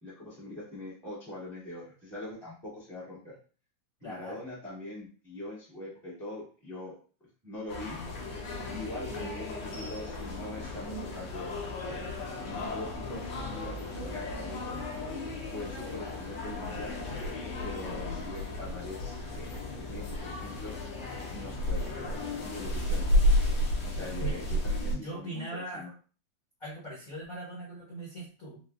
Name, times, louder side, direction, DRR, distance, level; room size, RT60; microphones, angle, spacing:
voice 1, 0.0-3.3 4.0-7.0 7.4-8.0 8.7-12.1 12.5-14.8 15.5-17.0 17.6-20.8 21.3-23.3 23.8-25.9, left 2 dB, 35° right, -8 dB, 0.3 m, -42 dB
voice 2, 4.0-4.4 15.8-16.1 23.9-24.6 24.9-25.9 26.6-28.6, right 1 dB, 85° left, -8 dB, 0.7 m, -41 dB
sound 1, 7.7-25.0, left 1 dB, 65° left, 2.1 m, -33 dB
5.5 x 2.1 x 2.3 m, 0.39 s
omnidirectional pair, 3.5 m